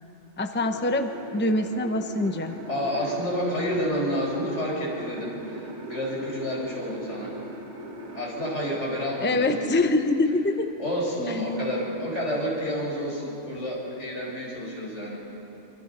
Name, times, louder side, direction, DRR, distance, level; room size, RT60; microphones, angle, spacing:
voice 1, 0.4-2.6 9.2-10.7 11.3-11.4, left 2 dB, 10° left, 7 dB, 0.8 m, -24 dB
sound 1, 0.6-8.6, equal, 75° right, 2.1 m, -40 dB
voice 2, 2.7-7.4 8.1-9.7 10.8-15.2, equal, 80° left, -3 dB, 5.6 m, -29 dB
26.0 x 25.0 x 5.6 m, 2.9 s
omnidirectional pair, 1.2 m